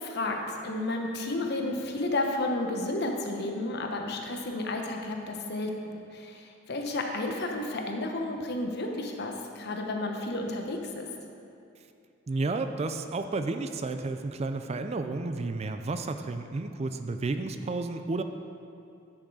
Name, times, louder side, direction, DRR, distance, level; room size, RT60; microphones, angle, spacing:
voice 1, 0.0-11.0, left 2 dB, 55° left, 2 dB, 1.0 m, -32 dB
voice 2, 12.3-18.2, right 3 dB, 35° right, 8 dB, 0.4 m, -32 dB
10.5 x 6.2 x 4.8 m, 2.6 s
head